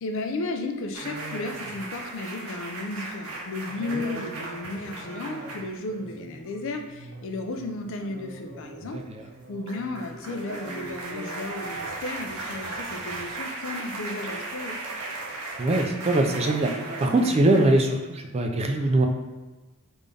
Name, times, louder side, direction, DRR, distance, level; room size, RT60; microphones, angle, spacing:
voice 1, 0.0-9.0 9.5-14.8, left 2 dB, 60° left, 5 dB, 0.4 m, -34 dB
sound 1, 0.9-17.8, right 2 dB, 75° right, 0.6 m, -37 dB
voice 2, 8.9-9.2 15.6-16.7 17.0-19.1, right 2 dB, 30° right, 4 dB, 0.3 m, -22 dB
3.6 x 2.5 x 3.3 m, 1.1 s
head